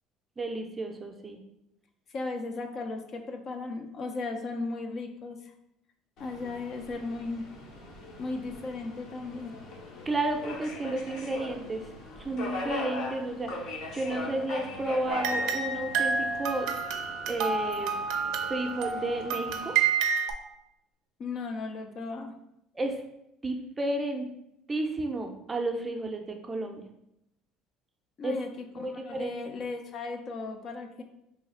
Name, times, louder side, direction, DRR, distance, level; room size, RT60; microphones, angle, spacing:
voice 1, 0.4-1.4 10.1-11.9 12.2-13.5 13.9-16.7 17.3-17.9 18.5-19.7 22.7-23.0 23.4-24.3 24.7-26.8 28.2-28.4 28.8-29.3, right 2 dB, 20° right, 3 dB, 0.5 m, -32 dB
voice 2, 2.1-5.5 6.2-7.4 8.2-9.5 21.2-22.3 28.2-31.0, left 3 dB, 45° left, 5 dB, 0.4 m, -36 dB
Subway metro underground, 6.2-19.8, left 2 dB, 65° left, 0.9 m, -41 dB
sound 1, 15.1-20.3, right 5 dB, 75° right, 0.4 m, -29 dB
3.2 x 2.3 x 4.1 m, 0.81 s
supercardioid pair, 100°, 0 cm